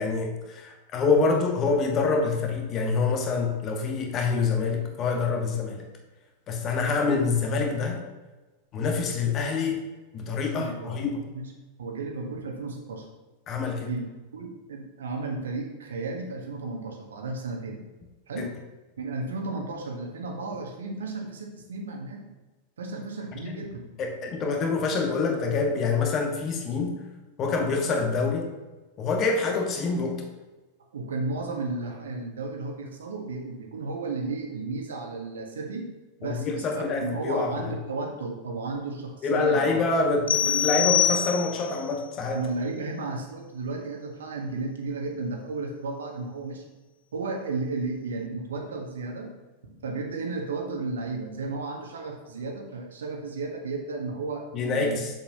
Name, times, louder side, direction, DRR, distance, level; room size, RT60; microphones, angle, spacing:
voice 1, 0.0-5.9 6.5-8.0 8.7-9.8 10.1-11.2 13.5-13.9 18.4-18.5 23.5-23.6 24.0-27.0 27.4-28.5 29.0-30.2 36.2-37.7 39.2-42.4 54.5-55.1, left 4 dB, 30° left, 2 dB, 1.4 m, -26 dB
voice 2, 10.5-10.9 11.3-11.5 11.8-13.1 13.9-14.1 14.3-17.8 18.3-18.5 19.0-22.3 22.8-23.9 30.9-35.9 36.2-39.8 42.3-46.6 47.1-49.3 49.6-55.0, right 3 dB, 65° right, 2 dB, 1.3 m, -33 dB
sound 1, 40.3-41.8, left 9 dB, 65° left, 0.5 m, -24 dB
7.6 x 7.0 x 2.8 m, 1.2 s
figure-of-eight pair, 90°, 0 cm